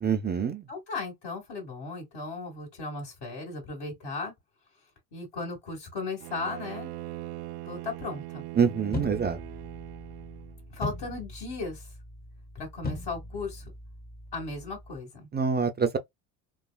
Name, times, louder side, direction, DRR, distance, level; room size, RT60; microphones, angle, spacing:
voice 1, 0.0-0.7 8.5-9.4 15.3-16.0, right 6 dB, 20° right, 0.4 m, -26 dB
voice 2, 0.7-4.3 5.1-6.9 7.6-8.5 10.7-11.9 12.6-13.7 14.3-15.3, left 3 dB, 55° left, 1.9 m, -36 dB
Bowed string instrument, 6.2-10.7, right 17 dB, 75° right, 0.5 m, -40 dB
sound 1, 8.9-15.0, left 2 dB, 20° left, 0.8 m, -40 dB
3.1 x 2.4 x 2.3 m
hypercardioid pair, 70°, 49 cm